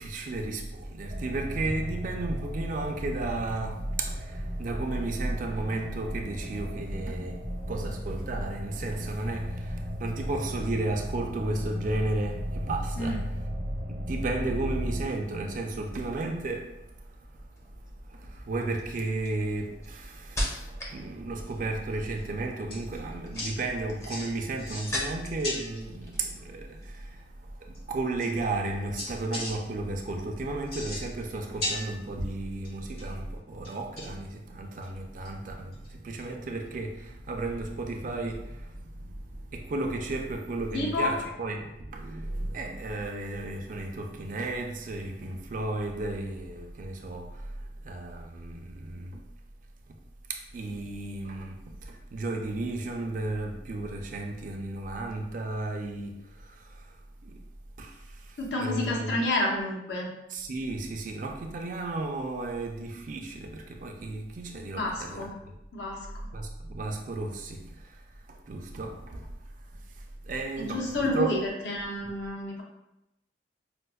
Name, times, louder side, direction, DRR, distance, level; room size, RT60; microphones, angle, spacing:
voice 1, 0.0-13.2 13.9-17.5 18.1-49.2 49.9-50.0 50.3-57.0 57.2-57.4 57.8-59.1 60.3-65.5 66.3-69.3 69.7-71.3, right 2 dB, 50° right, 3 dB, 0.4 m, -34 dB
sound 1, 1.1-15.0, equal, 65° right, 0.7 m, -35 dB
sound 2, 17.5-17.9 18.6-21.0 21.3-21.8 23.0-25.5 25.8-26.4 26.7-27.0, left 1 dB, 15° left, 0.5 m, -37 dB
sound 3, 21.9-22.2 22.7-23.0 23.3-23.5 24.1-24.3 24.6-25.1 25.4-25.8 27.2-27.3 27.7-27.8 28.2-28.7 29.0-29.5 30.6-31.3 31.6-32.3 32.6-33.1 33.6-34.2 34.8-34.9 35.2-35.3 35.7-35.9 36.2-36.3 38.3-38.4, left 2 dB, 60° left, 1.3 m, -36 dB
voice 2, 40.7-41.1 58.4-60.1 64.7-65.3 65.7-66.0 70.6-72.6, left 2 dB, 80° left, -2 dB, 0.8 m, -29 dB
5.1 x 2.0 x 2.3 m, 0.89 s
head